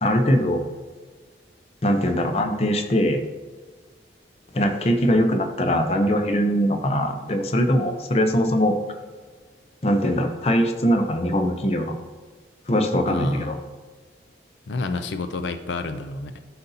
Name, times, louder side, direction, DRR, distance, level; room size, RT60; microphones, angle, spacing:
voice 1, 0.0-0.6 1.8-3.2 4.5-8.8 9.8-12.0 12.7-13.6, equal, 35° left, 6 dB, 0.6 m, -21 dB
voice 2, 13.1-13.5 14.7-16.4, left 3 dB, 80° left, 8 dB, 0.5 m, -30 dB
12.0 x 4.1 x 2.7 m, 1.5 s
head